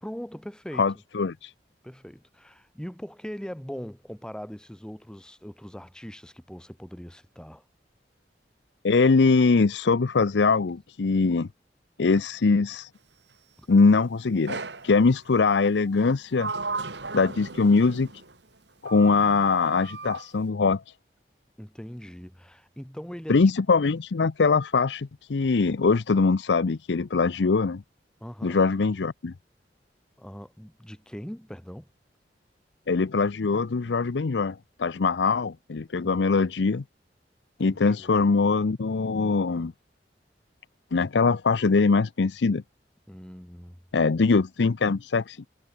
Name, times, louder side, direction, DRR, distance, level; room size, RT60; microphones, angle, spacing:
voice 1, 0.0-0.8 1.8-7.6 13.6-13.7 21.6-23.5 28.2-28.7 30.2-31.9 37.6-38.1 43.1-43.8, equal, 5° left, 1.1 m, -41 dB
voice 2, 0.8-1.5 8.8-11.5 12.0-12.9 13.7-16.5 17.1-18.1 18.8-20.8 23.3-27.8 28.4-29.3 32.9-36.8 37.6-39.7 40.9-42.6 43.9-45.5, left 4 dB, 80° left, 0.6 m, -22 dB
Sliding door, 14.5-14.9 15.9-18.4 18.9-20.3, right 3 dB, 80° right, 3.7 m, -36 dB
head